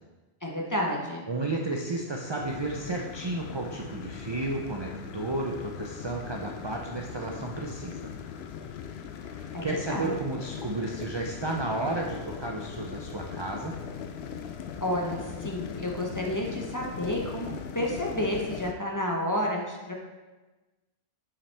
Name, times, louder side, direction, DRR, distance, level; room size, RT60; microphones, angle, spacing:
voice 1, 0.4-1.2 9.5-10.1 14.8-19.9, left 1 dB, 20° left, -1 dB, 0.8 m, -30 dB
voice 2, 1.3-8.1 9.3-13.8, right 2 dB, 35° right, 0 dB, 0.5 m, -32 dB
sound 1, 2.4-18.7, left 7 dB, 75° left, 0.8 m, -40 dB
7.3 x 5.7 x 3.3 m, 1.2 s
omnidirectional pair, 1.1 m